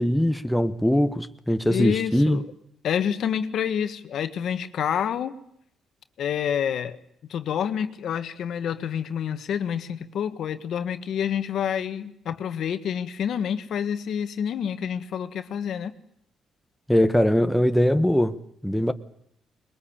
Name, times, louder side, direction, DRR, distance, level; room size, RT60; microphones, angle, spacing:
voice 1, 0.0-2.4 16.9-18.4 18.6-18.9, equal, 5° left, 1.2 m, -21 dB
voice 2, 1.7-2.5 2.8-5.4 6.2-7.0 7.3-15.9, left 8 dB, 70° left, 1.5 m, -28 dB
21.5 x 21.5 x 8.8 m
cardioid pair, 90°, 0 cm